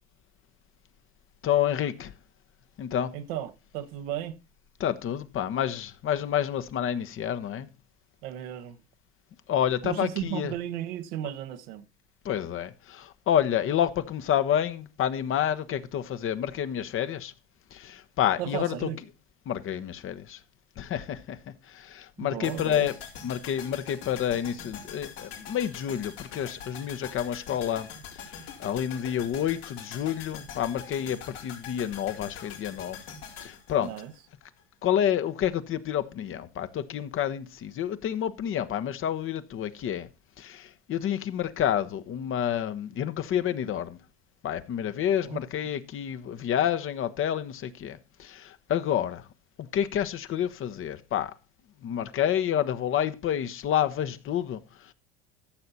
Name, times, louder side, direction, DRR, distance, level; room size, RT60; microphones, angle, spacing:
voice 1, 1.4-2.1 2.8-3.1 4.8-7.7 9.5-10.5 12.2-17.3 17.7-18.9 19.5-20.4 20.8-21.4 21.6-22.9 23.2-33.0 33.4-33.9 34.8-40.1 40.4-44.0 44.4-49.3 49.7-51.3 51.8-54.9, left 10 dB, 45° left, 1.1 m, -29 dB
voice 2, 3.1-4.4 8.2-8.8 9.8-11.9 18.4-19.0 22.2-22.9 33.8-34.1 45.2-45.4, right 12 dB, 70° right, 1.3 m, -35 dB
sound 1, 22.4-34.6 34.9-35.0, left 7 dB, 85° left, 4.2 m, -43 dB
14.5 x 6.7 x 4.1 m
hypercardioid pair, 85°, 30 cm